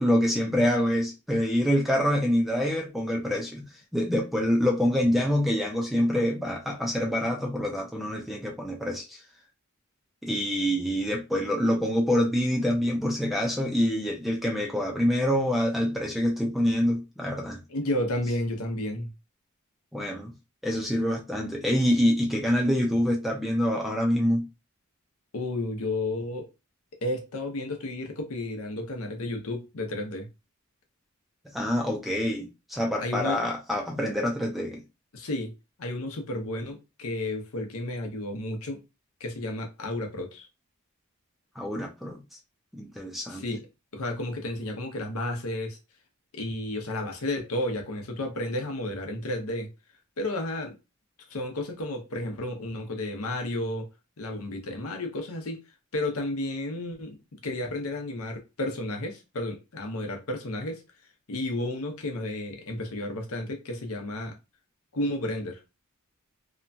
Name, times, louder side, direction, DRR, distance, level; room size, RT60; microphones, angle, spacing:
voice 1, 0.0-3.6 3.9-9.2 10.2-17.6 19.9-20.3 20.6-24.5 31.5-34.8 41.6-42.2 42.7-43.4, equal, ahead, 0.4 m, -26 dB
voice 2, 17.7-19.1 25.3-26.5 27.0-30.3 33.0-33.5 35.1-35.5 35.8-38.8 39.2-40.5 43.3-43.7 43.9-45.8 46.3-49.7 50.2-50.8 51.3-53.9 54.2-55.6 55.9-60.8 61.3-64.3 64.9-65.6, left 1 dB, 85° left, 0.8 m, -32 dB
2.9 x 2.2 x 2.6 m
head